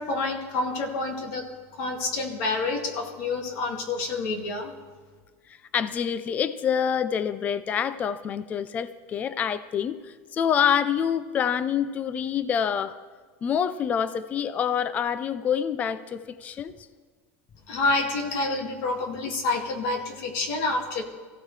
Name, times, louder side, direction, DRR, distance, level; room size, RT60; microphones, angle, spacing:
voice 1, 0.0-1.4 1.8-4.7 17.7-21.0, left 3 dB, 50° left, 2 dB, 2.2 m, -28 dB
voice 2, 5.7-13.0 13.4-16.7, left 8 dB, 20° left, 14 dB, 0.4 m, -26 dB
23.5 x 15.5 x 3.3 m, 1.5 s
supercardioid pair, 170°, 8 cm